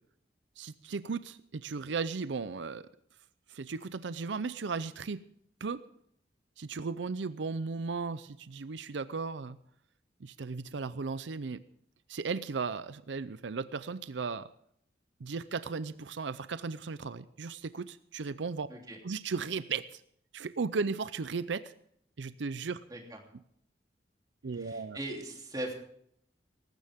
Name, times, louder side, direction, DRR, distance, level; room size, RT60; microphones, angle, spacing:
voice 1, 0.6-2.9 3.5-5.2 5.6-5.8 6.6-9.6 10.2-11.6 12.1-14.5 15.2-18.7 19.0-20.0 20.3-21.7 22.2-22.8 24.4-25.0, right 4 dB, 90° right, 15 dB, 0.6 m, -36 dB
voice 2, 24.5-25.7, right 1 dB, 20° right, 0 dB, 3.1 m, -39 dB
18.0 x 15.5 x 3.6 m, 0.68 s
head